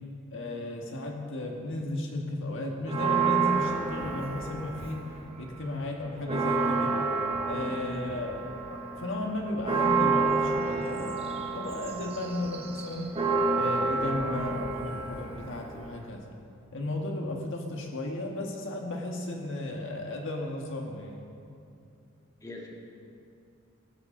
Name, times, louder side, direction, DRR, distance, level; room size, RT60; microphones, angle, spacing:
voice 1, 0.3-5.0 5.4-7.0 7.5-8.4 8.7-13.2 13.5-16.2 16.7-21.2, left 1 dB, 60° left, 1 dB, 1.6 m, -34 dB
Church bell, 2.9-5.2 5.6-5.7 6.0-16.1, right 4 dB, 30° right, 1.2 m, -29 dB
voice 2, 7.7-8.0 22.4-22.7, left 1 dB, 15° left, -3 dB, 2.1 m, -44 dB
19.5 x 14.5 x 3.8 m, 2.6 s
head